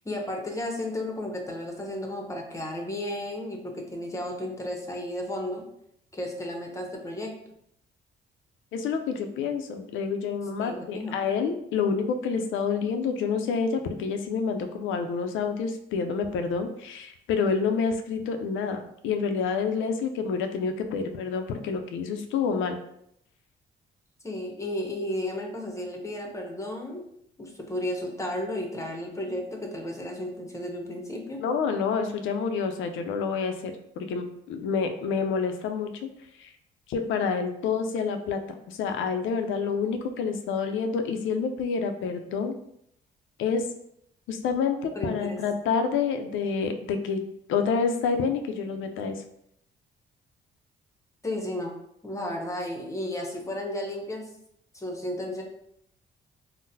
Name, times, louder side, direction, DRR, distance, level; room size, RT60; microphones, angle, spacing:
voice 1, 0.0-5.6 6.1-7.3 10.6-11.2 24.2-27.0 27.4-31.4 44.9-45.4 51.2-51.7 52.0-54.3 54.7-55.4, left 1 dB, 15° left, 1 dB, 0.7 m, -33 dB
voice 2, 8.7-22.8 31.4-36.1 36.4-36.5 36.9-38.4 38.7-42.6 43.4-43.6 44.3-47.2 47.5-49.2, left 5 dB, 80° left, 6 dB, 0.4 m, -28 dB
3.8 x 2.0 x 2.6 m, 0.74 s
cardioid pair, 90°, 20 cm